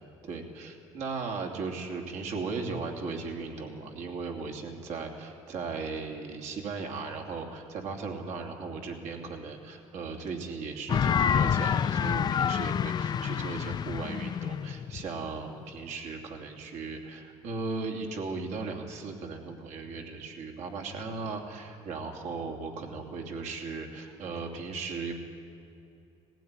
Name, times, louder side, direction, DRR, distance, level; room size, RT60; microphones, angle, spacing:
voice 1, 0.2-25.1, right 4 dB, 75° right, 3 dB, 2.9 m, -37 dB
sound 1, 10.9-15.8, left 8 dB, 35° left, 0.4 m, -28 dB
19.5 x 15.5 x 9.8 m, 2.7 s
cardioid pair, 90°, 12 cm